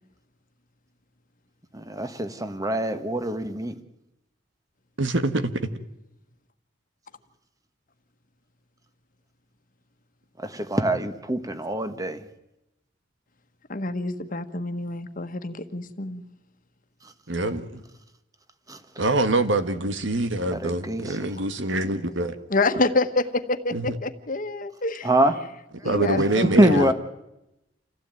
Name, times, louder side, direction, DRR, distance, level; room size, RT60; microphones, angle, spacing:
voice 1, 1.7-3.7 10.4-12.2 18.7-18.8 20.5-21.3 25.0-25.3 26.6-26.9, right 1 dB, 20° right, 1.5 m, -24 dB
voice 2, 5.0-5.5 17.3-17.8 19.0-22.4 23.7-24.0 25.8-26.9, right 2 dB, 90° right, 1.7 m, -25 dB
voice 3, 13.7-16.2 22.5-25.1 25.8-26.9, left 2 dB, 45° left, 1.5 m, -27 dB
28.0 x 16.0 x 9.2 m
head